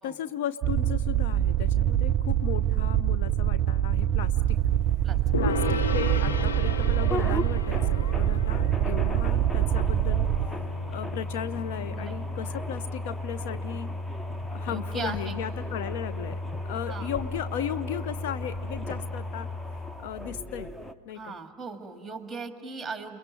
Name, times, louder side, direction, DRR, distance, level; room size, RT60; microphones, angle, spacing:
voice 1, 0.0-4.6 5.4-10.3 10.9-13.9 14.5-19.5 20.0-20.7 21.1-21.3, left 10 dB, 50° left, 10 dB, 0.6 m, -36 dB
sound 1, 0.6-10.5, right 11 dB, 30° right, 0.5 m, -25 dB
sound 2, 4.5-20.9, left 1 dB, 5° left, 0.7 m, -35 dB
Gong, 5.3-12.8, left 3 dB, 65° left, 1.4 m, -35 dB
voice 2, 11.8-12.1 14.6-15.3 16.9-17.1 21.1-23.2, right 4 dB, 10° right, 6 dB, 2.1 m, -38 dB
30.0 x 22.0 x 7.9 m, 2.7 s
figure-of-eight pair, 90°, 0 cm